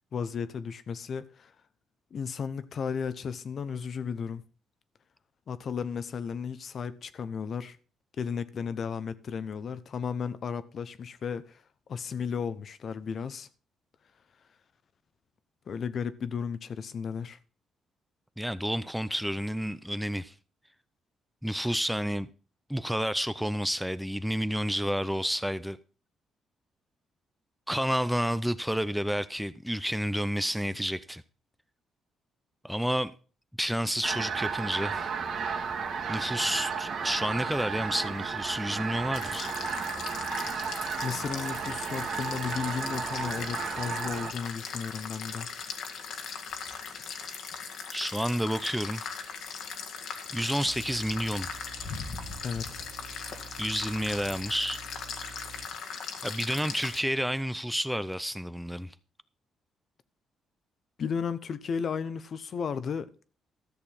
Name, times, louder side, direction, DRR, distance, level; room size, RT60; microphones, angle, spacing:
voice 1, 0.1-1.5 2.1-4.4 5.5-7.8 8.2-11.6 11.9-13.5 15.7-17.4 41.0-45.5 52.4-52.8 61.0-63.1, left 6 dB, 55° left, 0.8 m, -34 dB
voice 2, 18.4-20.3 21.4-22.3 22.7-25.8 27.7-31.2 32.6-33.1 33.6-35.1 36.1-39.5 47.9-49.1 50.3-51.5 53.6-54.8 56.2-58.9, equal, ahead, 0.6 m, -30 dB
sound 1, 34.0-44.3, right 6 dB, 65° right, 2.0 m, -33 dB
sound 2, 39.1-57.0, left 6 dB, 75° left, 1.9 m, -39 dB
sound 3, 50.7-55.7, right 6 dB, 50° right, 1.3 m, -49 dB
13.5 x 6.7 x 5.6 m
cardioid pair, 90°, 0 cm